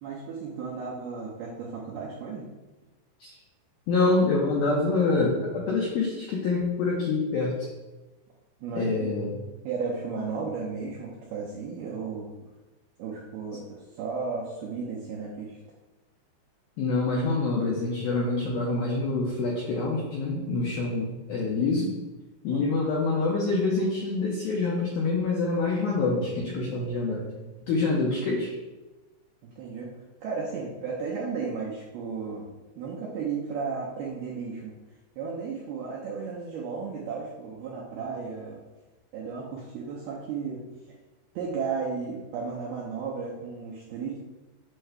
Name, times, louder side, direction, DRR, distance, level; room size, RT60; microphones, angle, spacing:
voice 1, 0.0-2.5 8.6-9.3 9.6-12.3 13.0-15.6 22.5-22.7 29.4-32.4 32.8-34.7 35.2-38.6 39.1-40.6 41.4-44.2, right 5 dB, 80° right, -5 dB, 2.2 m, -34 dB
voice 2, 3.9-7.5 8.8-9.3 16.8-21.9 22.4-27.2 27.7-28.5, left 3 dB, 85° left, -3 dB, 2.1 m, -26 dB
8.3 x 6.4 x 2.2 m, 1.1 s
omnidirectional pair, 5.5 m